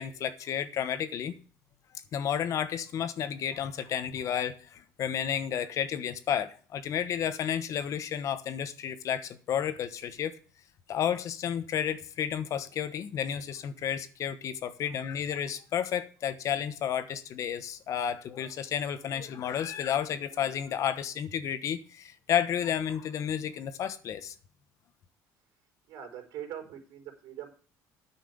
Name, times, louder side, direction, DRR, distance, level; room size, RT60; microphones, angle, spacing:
voice 1, 0.0-1.3 2.1-10.4 10.9-24.3, left 9 dB, 50° left, 1.2 m, -32 dB
voice 2, 25.9-27.5, right 10 dB, 70° right, 4.3 m, -42 dB
9.6 x 6.0 x 8.4 m
cardioid pair, 125°, 7 cm